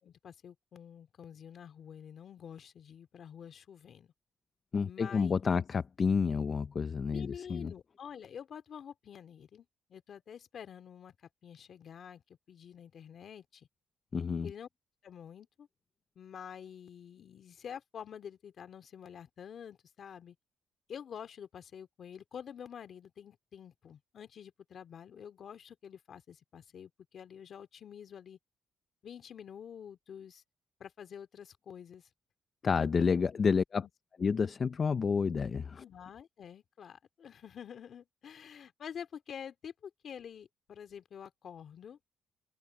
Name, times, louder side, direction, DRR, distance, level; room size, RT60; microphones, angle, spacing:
voice 1, 0.0-4.1 4.8-5.7 7.1-11.2 11.4-12.2 12.5-13.7 14.4-14.7 15.0-15.7 16.2-20.4 20.9-28.4 29.0-30.4 30.8-32.1 32.8-33.5 33.8-33.9 35.8-42.0, left 8 dB, 60° left, 2.5 m, -48 dB
voice 2, 4.7-7.7 14.1-14.5 32.6-33.8 34.2-35.8, left 5 dB, 40° left, 0.7 m, -29 dB
cardioid pair, 90°, 0 cm